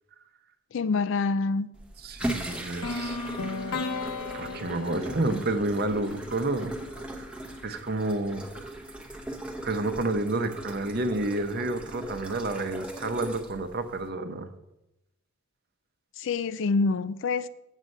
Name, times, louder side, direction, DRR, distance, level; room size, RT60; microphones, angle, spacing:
voice 1, 0.7-1.7 16.2-17.5, left 4 dB, 55° left, 0.4 m, -26 dB
sound 1, 1.7-14.1, right 1 dB, 5° right, 0.7 m, -39 dB
voice 2, 2.0-3.2 3.7-3.8 4.3-6.7 7.0-7.3 7.6-8.7 9.6-14.5, right 2 dB, 45° right, 0.7 m, -30 dB
sound 2, 2.8-6.8, left 3 dB, 80° left, 1.0 m, -35 dB
7.8 x 7.3 x 5.4 m
head